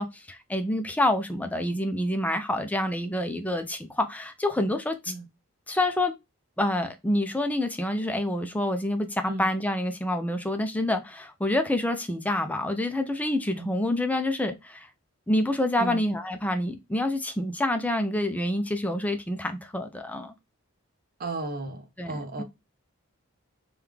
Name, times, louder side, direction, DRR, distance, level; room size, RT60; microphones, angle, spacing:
voice 1, 0.0-5.1 5.7-6.1 6.6-14.9 15.3-20.3 22.0-22.4, left 1 dB, 5° left, 0.4 m, -27 dB
voice 2, 21.2-22.4, right 2 dB, 45° right, 0.6 m, -34 dB
3.1 x 2.3 x 3.4 m
head